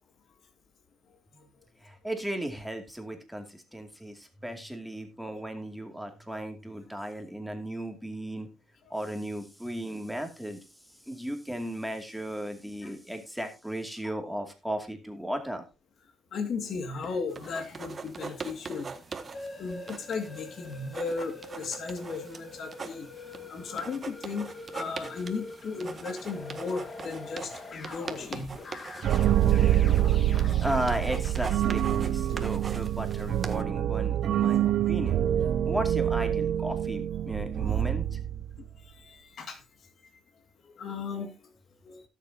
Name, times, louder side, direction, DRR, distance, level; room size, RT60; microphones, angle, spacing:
voice 1, 1.8-8.5 8.9-10.6 11.1-15.6 30.6-35.2 35.6-38.2, right 1 dB, ahead, 5 dB, 2.4 m, -35 dB
voice 2, 16.3-19.0 19.6-28.6 30.4-30.5 32.3-32.4 38.6-39.6 40.6-41.5 41.8-42.0, left 4 dB, 60° left, 6 dB, 2.1 m, -36 dB
sound 1, 17.3-33.6, right 4 dB, 40° right, 1.5 m, -43 dB
sound 2, 19.3-31.7, left 3 dB, 40° left, 1.5 m, -45 dB
sound 3, 29.0-38.7, right 11 dB, 70° right, 0.6 m, -26 dB
18.0 x 7.1 x 2.8 m, 0.28 s
cardioid pair, 90°, 0 cm